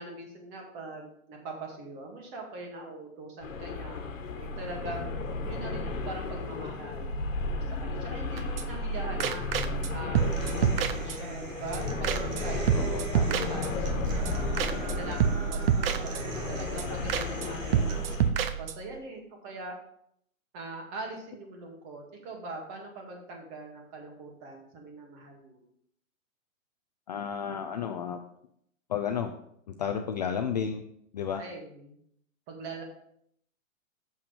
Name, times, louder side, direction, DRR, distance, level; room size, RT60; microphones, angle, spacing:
voice 1, 0.0-5.2 5.4-7.1 7.5-9.5 9.9-12.8 13.2-17.9 18.6-19.7 20.5-25.6 31.4-31.9 32.5-32.8, right 2 dB, 30° right, 1 dB, 2.0 m, -42 dB
sound 1, 3.4-18.3, left 2 dB, 65° left, 1.4 m, -34 dB
sound 2, 8.4-8.9 9.2-9.9 10.2-11.5 11.7-11.8 12.0-12.4 12.7-14.0 14.3-14.4 14.6-15.0 15.2-16.5 16.8-16.9 17.1-17.5 17.7-19.0, right 8 dB, 45° right, 0.7 m, -28 dB
Human voice / Acoustic guitar, 10.2-18.1, right 4 dB, 65° right, 1.8 m, -40 dB
voice 2, 12.7-13.6 27.1-28.2 28.9-29.3 29.8-30.8 31.1-31.4, left 7 dB, 35° left, 6 dB, 0.4 m, -32 dB
7.0 x 5.7 x 5.3 m, 0.72 s
hypercardioid pair, 145°, 41 cm